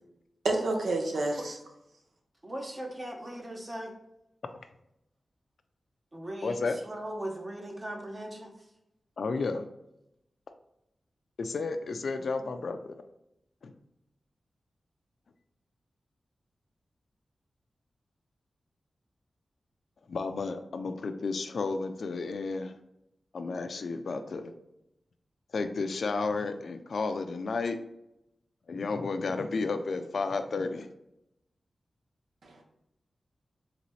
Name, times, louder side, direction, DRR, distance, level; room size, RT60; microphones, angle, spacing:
voice 1, 0.4-1.6 32.4-32.6, right 2 dB, 80° right, 2 dB, 0.7 m, -29 dB
voice 2, 2.4-3.9 6.1-8.5, right 1 dB, 30° right, 1 dB, 0.9 m, -39 dB
voice 3, 6.4-6.8 9.2-9.7 11.4-13.0 13.6-13.7 20.1-22.8 23.3-24.5 25.5-27.8 28.7-30.9, left 4 dB, 75° left, 8 dB, 0.4 m, -32 dB
3.9 x 3.2 x 3.1 m, 0.84 s
wide cardioid pair, 75°, 0 cm